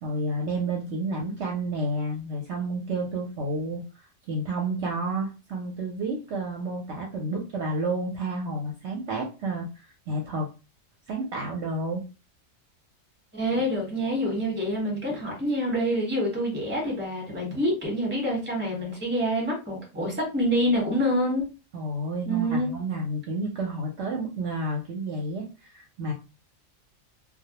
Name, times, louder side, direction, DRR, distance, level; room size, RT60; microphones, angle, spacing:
voice 1, 0.0-3.8 4.3-10.5 11.1-12.0 21.7-26.1, right 2 dB, 65° right, 0 dB, 0.8 m, -30 dB
voice 2, 13.3-21.5 22.3-22.7, equal, 10° right, -2 dB, 0.8 m, -26 dB
2.2 x 2.0 x 2.8 m, 0.31 s
omnidirectional pair, 1.4 m